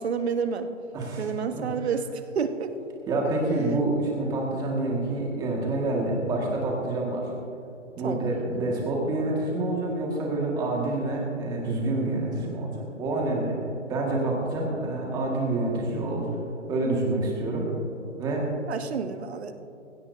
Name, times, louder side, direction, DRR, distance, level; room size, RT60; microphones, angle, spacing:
voice 1, 0.0-0.7 1.2-2.7 8.0-8.4 18.7-19.6, right 6 dB, 55° right, 9 dB, 1.1 m, -29 dB
voice 2, 0.9-1.2 1.5-1.6 3.1-7.3 8.0-13.6 13.9-16.3 16.7-17.7 18.2-18.5, right 2 dB, 10° right, -2 dB, 1.7 m, -27 dB
20.0 x 17.0 x 2.7 m, 2.7 s
hypercardioid pair, 160°, 38 cm